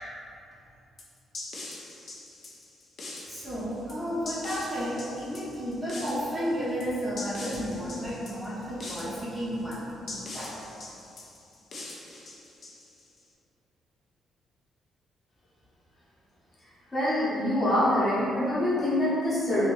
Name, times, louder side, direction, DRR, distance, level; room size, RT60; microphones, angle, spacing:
sound 1, 1.0-13.2, left 2 dB, 45° left, 0.5 m, -42 dB
voice 1, 3.3-10.5, equal, 15° right, -9 dB, 0.7 m, -32 dB
voice 2, 16.9-19.7, left 1 dB, 25° left, -9 dB, 0.9 m, -25 dB
2.7 x 2.6 x 3.0 m, 2.6 s
cardioid pair, 130°, 0 cm